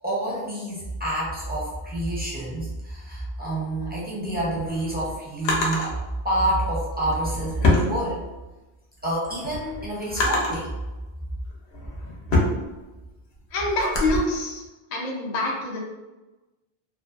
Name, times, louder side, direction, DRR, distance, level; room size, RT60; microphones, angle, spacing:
voice 1, 0.0-6.0 6.2-8.2 9.0-10.7, right 1 dB, 15° right, -7 dB, 0.4 m, -28 dB
Drawer open or close, 4.2-5.9 6.9-8.6 9.0-10.7 11.3-14.2, left 2 dB, 75° left, 0.9 m, -26 dB
voice 2, 13.5-14.6 14.9-15.8, left 2 dB, 55° left, -2 dB, 0.5 m, -26 dB
2.5 x 2.2 x 2.3 m, 1.1 s
omnidirectional pair, 1.1 m